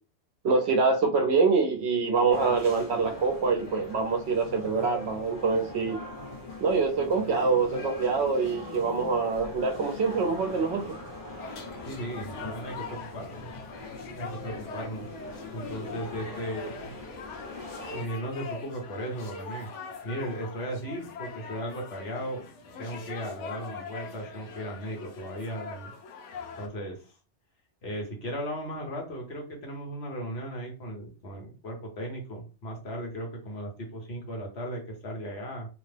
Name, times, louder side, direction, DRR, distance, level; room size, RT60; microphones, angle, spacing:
voice 1, 0.4-6.0 6.6-10.9, right 4 dB, 70° right, 0.9 m, -25 dB
sound 1, 2.3-18.0, left 2 dB, 30° left, 1.2 m, -41 dB
sound 2, 11.4-26.7, left 4 dB, 85° left, 0.9 m, -42 dB
voice 2, 11.8-13.6 14.2-15.1 15.5-16.9 17.9-19.7 20.0-22.4 22.8-25.9 26.6-27.1 27.8-35.7, equal, 65° left, 1.3 m, -36 dB
2.8 x 2.1 x 3.2 m
omnidirectional pair, 1.2 m